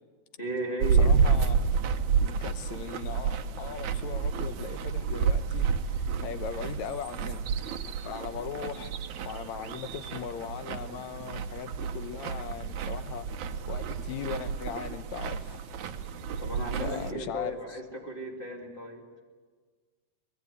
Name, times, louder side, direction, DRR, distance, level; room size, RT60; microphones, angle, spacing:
voice 1, 0.4-1.1 16.4-19.0, right 1 dB, 20° left, 2.5 m, -35 dB
sound 1, 0.8-17.1, right 6 dB, 70° right, 2.4 m, -30 dB
voice 2, 0.9-1.6 1.8-1.9 2.2-7.4 8.1-8.9 9.3-13.3 13.7-15.6 16.8-17.8, left 8 dB, 75° left, 2.1 m, -39 dB
23.5 x 21.0 x 9.6 m
omnidirectional pair, 3.5 m